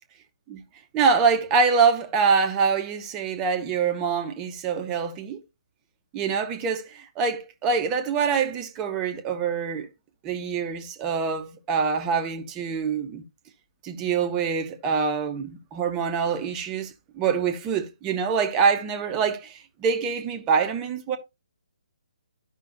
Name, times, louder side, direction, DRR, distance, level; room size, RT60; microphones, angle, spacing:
voice 1, 0.9-5.4 6.1-9.9 10.2-13.2 13.8-21.2, right 5 dB, 20° right, 0.9 m, -25 dB
13.5 x 5.5 x 2.6 m
figure-of-eight pair, 140°, 4 cm